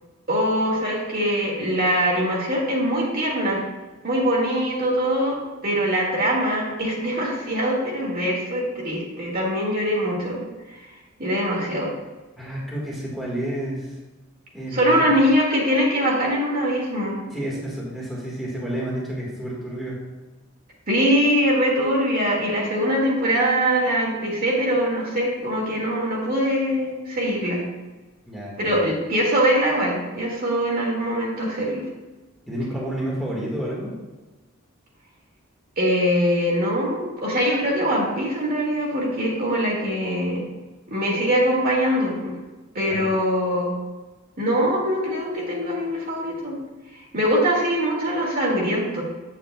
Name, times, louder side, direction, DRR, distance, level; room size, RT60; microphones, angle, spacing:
voice 1, 0.3-3.6 4.0-10.4 11.2-11.9 14.7-17.2 20.9-27.6 28.6-31.8 35.8-40.4 40.9-42.3 42.7-43.7 44.4-46.6 47.1-49.0, equal, 45° right, -4 dB, 2.0 m, -22 dB
voice 2, 12.4-14.0 14.5-15.1 17.1-20.0 28.3-28.8 32.5-33.9 42.9-43.1, right 1 dB, ahead, -6 dB, 1.6 m, -30 dB
8.6 x 7.5 x 2.3 m, 1.2 s
head